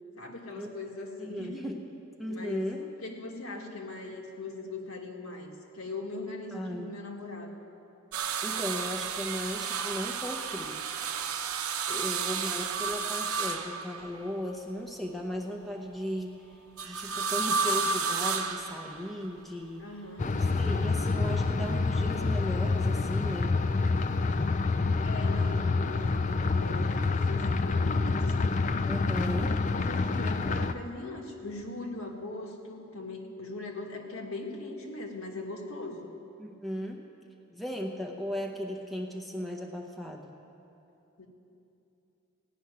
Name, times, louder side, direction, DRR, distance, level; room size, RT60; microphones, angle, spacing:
voice 1, 0.2-1.7 2.3-2.7 3.0-7.6 11.9-12.5 19.8-20.4 25.0-28.6 29.6-36.1 41.2-41.3, left 2 dB, 70° left, 0 dB, 1.7 m, -40 dB
voice 2, 1.2-1.8 2.2-2.8 6.5-6.9 8.4-10.9 11.9-16.6 16.8-19.8 20.2-23.6 28.8-29.5 36.4-37.0 37.5-40.3, equal, ahead, 0 dB, 0.8 m, -37 dB
sound 1, 8.1-14.4 16.8-19.3 20.3-21.1 22.5-22.6, right 5 dB, 80° right, 0.8 m, -32 dB
sound 2, 20.2-30.7, left 3 dB, 35° left, 0.4 m, -27 dB
16.5 x 6.2 x 9.5 m, 2.8 s
head